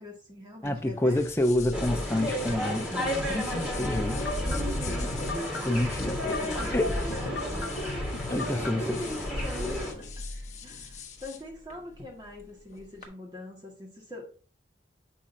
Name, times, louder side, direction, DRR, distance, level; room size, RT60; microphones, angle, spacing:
voice 1, 0.0-1.2 4.4-5.2 6.2-6.8 7.2-10.2 10.6-14.3, left 1 dB, 25° right, 1.8 m, -43 dB
sound 1, 0.6-13.1, left 4 dB, 40° left, 1.2 m, -44 dB
voice 2, 0.6-2.9 3.3-4.2 5.6-6.2 6.7-7.0 8.3-9.0, left 1 dB, 15° left, 0.6 m, -28 dB
sound 2, 1.7-9.9, equal, 5° right, 1.8 m, -32 dB
sound 3, 3.8-9.0, left 1 dB, 75° left, 0.8 m, -37 dB
7.4 x 5.7 x 2.7 m
head